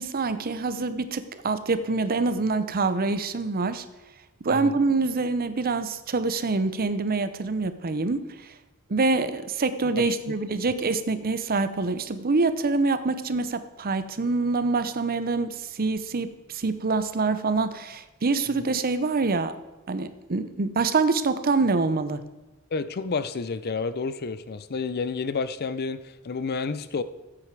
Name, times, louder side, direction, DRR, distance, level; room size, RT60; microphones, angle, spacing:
voice 1, 0.0-3.8 4.4-8.3 8.9-19.5 19.9-22.2, right 3 dB, 45° right, 12 dB, 0.7 m, -25 dB
voice 2, 22.7-27.0, left 4 dB, 45° left, 14 dB, 0.5 m, -30 dB
14.0 x 8.6 x 4.7 m, 1.1 s
head